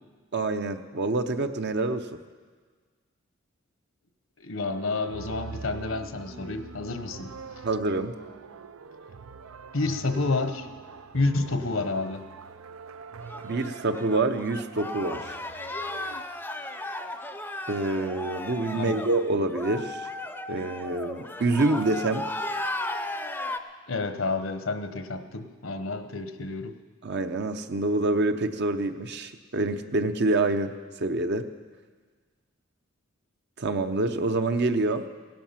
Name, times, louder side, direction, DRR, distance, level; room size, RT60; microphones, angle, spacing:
voice 1, 0.3-2.1 7.6-8.1 13.4-15.3 17.7-20.1 20.5-22.3 27.0-30.7 31.0-31.5 33.6-35.1, right 2 dB, 55° right, 8 dB, 0.7 m, -26 dB
voice 2, 4.4-7.3 9.7-10.7 11.1-12.2 18.7-19.0 23.9-26.8, left 3 dB, 70° left, 9 dB, 1.0 m, -29 dB
sound 1, 4.6-16.2, right 4 dB, 90° right, 0.6 m, -44 dB
sound 2, 13.2-23.6, left 1 dB, 10° left, 0.6 m, -35 dB
17.0 x 12.0 x 5.8 m, 1.5 s
head